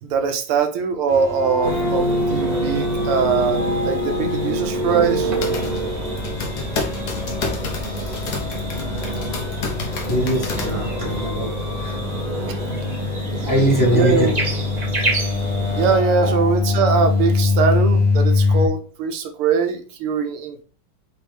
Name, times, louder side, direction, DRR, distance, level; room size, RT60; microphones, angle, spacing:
voice 1, 0.0-5.3 12.5-12.6 13.1-13.5 13.9-14.3 15.1-15.4 15.7-20.6, right 6 dB, 80° right, 1.6 m, -22 dB
sound 1, 1.1-18.7, left 3 dB, 80° left, 2.2 m, -24 dB
sound 2, 1.6-16.0, right 1 dB, 35° right, 0.6 m, -28 dB
sound 3, 5.0-11.3, left 4 dB, 55° left, 1.3 m, -30 dB
voice 2, 10.1-11.5 11.8-12.0 13.5-14.3, right 1 dB, 20° left, 0.6 m, -21 dB
5.1 x 3.1 x 3.3 m
omnidirectional pair, 2.4 m